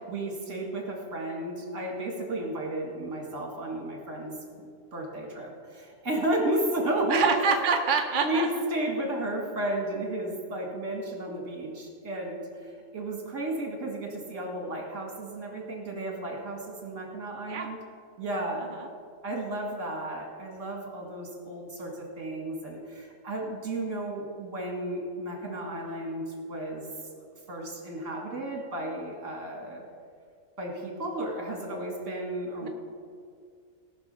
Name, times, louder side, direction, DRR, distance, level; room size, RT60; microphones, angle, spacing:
voice 1, 0.1-7.5 8.2-17.8 18.2-18.7 19.2-26.9 27.2-29.8 30.6-32.7, right 1 dB, 60° right, 1 dB, 2.3 m, -33 dB
voice 2, 7.1-8.5 17.5-17.7 32.6-32.7, right 5 dB, 45° right, 3 dB, 0.8 m, -25 dB
18.0 x 6.1 x 5.5 m, 2.2 s
omnidirectional pair, 1.5 m